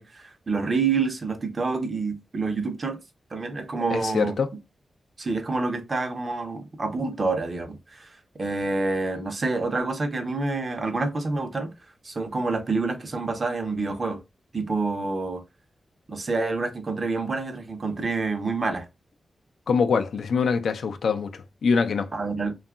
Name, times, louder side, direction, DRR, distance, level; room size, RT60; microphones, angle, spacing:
voice 1, 0.0-3.0 3.3-4.3 5.2-11.7 12.0-14.2 14.5-15.4 16.1-18.9 22.1-22.5, right 3 dB, 45° right, 0.7 m, -27 dB
voice 2, 3.9-4.5 19.7-22.1, left 5 dB, 80° left, 0.3 m, -24 dB
2.7 x 2.3 x 2.3 m
cardioid pair, 55°, 0 cm